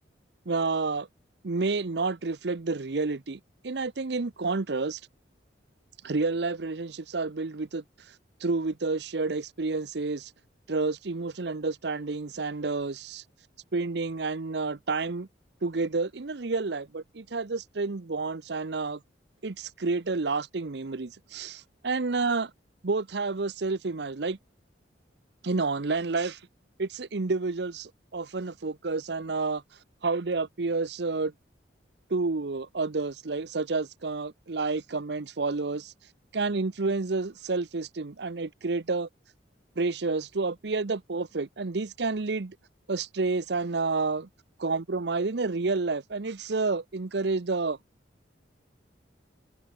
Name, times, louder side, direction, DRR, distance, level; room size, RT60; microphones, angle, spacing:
voice 1, 0.5-1.1 1.4-5.0 6.0-7.8 8.4-10.3 10.7-13.2 13.7-15.3 15.6-19.0 19.4-22.5 22.8-24.4 25.4-26.4 26.8-29.6 30.0-31.3 32.1-35.9 36.3-39.1 39.8-42.6 42.9-44.3 44.6-47.8, right 3 dB, 65° right, 0.8 m, -29 dB
head